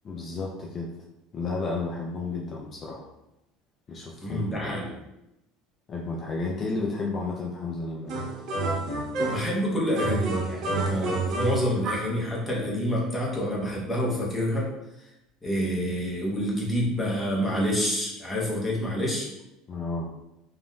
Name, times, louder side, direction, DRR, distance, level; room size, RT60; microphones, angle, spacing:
voice 1, 0.0-0.9 1.3-3.1 3.9-4.8 5.9-8.2 19.7-20.1, left 3 dB, 30° left, -2 dB, 0.4 m, -32 dB
voice 2, 4.2-4.9 9.2-14.7 15.4-19.3, equal, 10° left, -4 dB, 0.9 m, -27 dB
sound 1, 8.1-9.6 9.9-12.2, right 2 dB, 55° right, 0.6 m, -29 dB
3.4 x 2.5 x 2.2 m, 0.91 s
cardioid pair, 135°, 0 cm